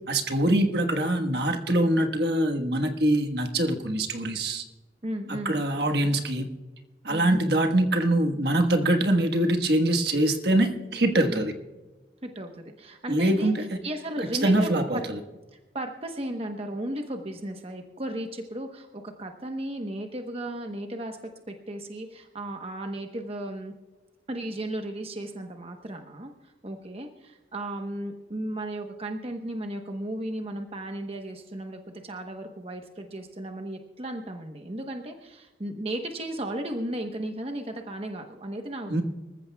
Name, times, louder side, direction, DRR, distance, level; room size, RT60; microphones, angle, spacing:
voice 1, 0.1-4.6 5.3-6.5 7.0-11.5 13.1-13.6 14.4-15.2 38.9-39.0, right 1 dB, 65° right, 5 dB, 1.4 m, -24 dB
voice 2, 5.0-5.6 7.1-7.3 11.3-11.5 12.2-13.5 13.8-15.0 15.5-21.2 21.5-23.7 24.3-39.0, right 1 dB, 35° right, 4 dB, 1.0 m, -35 dB
25.5 x 14.5 x 2.3 m, 1.2 s
head